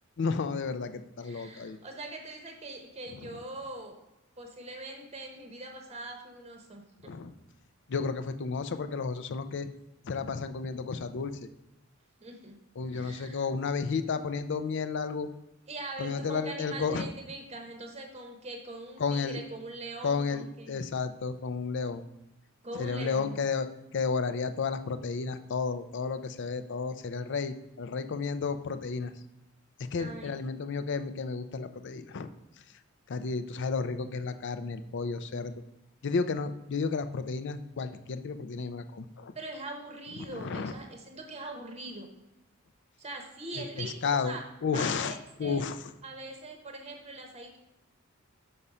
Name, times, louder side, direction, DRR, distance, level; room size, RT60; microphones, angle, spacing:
voice 1, 0.2-1.8 7.0-7.3 7.9-9.7 10.1-11.5 12.8-15.3 16.0-17.1 19.0-19.4 20.0-22.0 22.8-23.7 23.9-29.1 29.9-32.3 33.1-35.6 36.0-39.3 40.3-40.7 43.8-45.8, left 5 dB, 55° left, 11 dB, 0.5 m, -32 dB
voice 2, 1.2-4.0 4.4-6.8 12.2-12.6 12.9-13.5 15.7-20.8 22.6-23.4 30.0-30.4 39.3-42.1 43.0-44.4 44.7-45.6 46.0-47.6, right 2 dB, 30° right, 2 dB, 0.9 m, -42 dB
5.5 x 5.5 x 4.9 m, 0.94 s
head